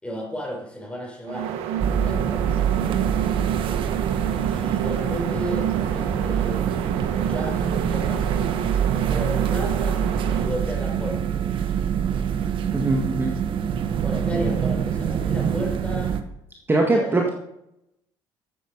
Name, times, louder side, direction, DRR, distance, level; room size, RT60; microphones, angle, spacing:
voice 1, 0.0-2.8 4.3-10.0 10.3-11.3 11.6-12.3 14.0-16.2 16.8-17.3, equal, 10° left, -1 dB, 5.3 m, -34 dB
sound 1, 1.3-10.6, right 9 dB, 85° right, 1.3 m, -29 dB
sound 2, 1.8-16.2, right 8 dB, 55° right, 1.2 m, -25 dB
voice 2, 12.7-13.3 16.7-17.3, right 2 dB, 20° right, 1 dB, 1.8 m, -21 dB
12.5 x 8.0 x 5.4 m, 0.80 s
cardioid pair, 100°, 10 cm